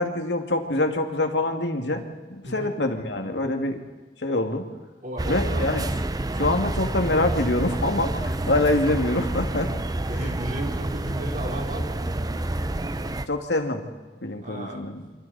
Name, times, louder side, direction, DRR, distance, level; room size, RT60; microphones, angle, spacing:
voice 1, 0.0-2.0 2.3-3.8 4.2-4.6 5.3-5.8 6.4-9.7 13.3-13.8 14.2-15.0, left 2 dB, 80° left, 4 dB, 2.5 m, -25 dB
voice 2, 2.4-2.8 5.0-5.7 6.2-6.5 8.2-8.4 10.1-12.0 14.4-14.8, right 1 dB, 50° right, 0 dB, 4.3 m, -35 dB
sound 1, 5.2-13.3, right 1 dB, 20° right, 0.7 m, -28 dB
28.0 x 25.5 x 4.3 m, 1.3 s
head